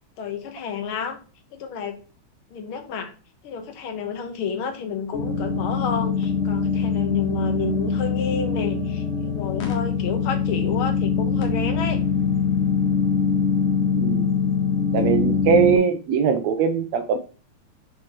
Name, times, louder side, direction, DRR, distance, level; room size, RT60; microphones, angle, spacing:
voice 1, 0.2-1.2 1.5-2.0 2.5-3.1 3.4-12.0, left 6 dB, 60° left, 1.4 m, -30 dB
sound 1, 5.1-15.8, left 6 dB, 90° left, 3.3 m, -23 dB
voice 2, 14.0-14.3 14.9-17.2, right 7 dB, 75° right, 1.7 m, -21 dB
8.3 x 4.5 x 3.0 m
omnidirectional pair, 3.6 m